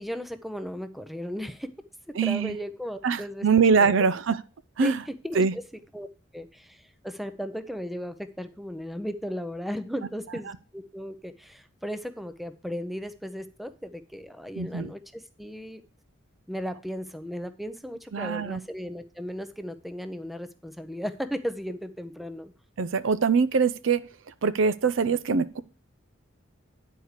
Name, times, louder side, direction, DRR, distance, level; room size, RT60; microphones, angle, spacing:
voice 1, 0.0-1.7 2.1-3.5 3.8-4.0 4.8-5.6 5.9-6.1 6.3-15.8 16.5-22.5, equal, ahead, 10 dB, 0.6 m, -36 dB
voice 2, 2.1-2.6 3.0-4.4 4.8-5.0 5.3-5.5 14.6-14.9 18.1-18.6 22.8-24.1 24.4-25.6, right 5 dB, 65° right, 15 dB, 0.5 m, -23 dB
9.6 x 4.7 x 6.5 m, 0.36 s
head